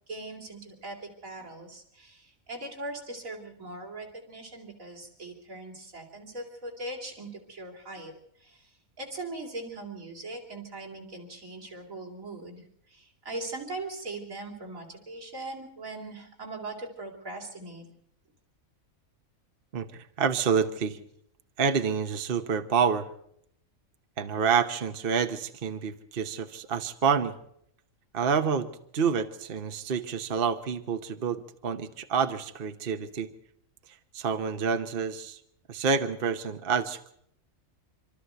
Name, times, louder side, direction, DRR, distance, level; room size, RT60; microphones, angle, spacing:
voice 1, 0.1-17.9, right 2 dB, 75° right, 0 dB, 3.7 m, -40 dB
voice 2, 19.7-21.0 21.6-23.1 24.2-27.3 28.1-28.7 28.9-33.3 34.1-35.4 35.7-37.0, right 6 dB, 45° right, 8 dB, 1.2 m, -28 dB
26.5 x 13.0 x 7.8 m, 0.72 s
omnidirectional pair, 1.4 m